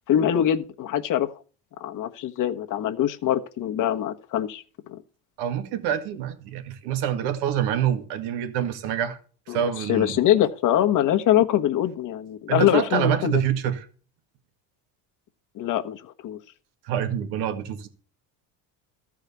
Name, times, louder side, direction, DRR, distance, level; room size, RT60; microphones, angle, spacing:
voice 1, 0.1-1.3 1.8-4.6 4.9-5.0 9.5-13.3 15.5-16.4, left 11 dB, 50° left, 1.2 m, -23 dB
voice 2, 5.4-9.2 9.5-10.2 12.5-13.9 16.8-17.9, right 10 dB, 80° right, 1.9 m, -26 dB
14.0 x 4.9 x 8.1 m
cardioid pair, 115°, 40 cm